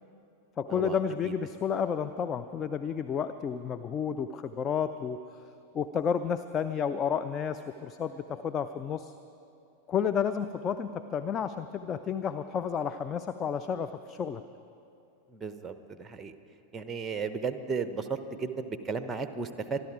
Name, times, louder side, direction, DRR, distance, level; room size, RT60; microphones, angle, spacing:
voice 1, 0.6-5.2 5.7-9.1 9.9-14.4, left 7 dB, 25° left, 10 dB, 0.4 m, -31 dB
voice 2, 15.3-16.3 16.7-19.8, right 5 dB, 15° right, 10 dB, 0.9 m, -34 dB
25.0 x 12.0 x 4.9 m, 2.6 s
figure-of-eight pair, 90°, 0 cm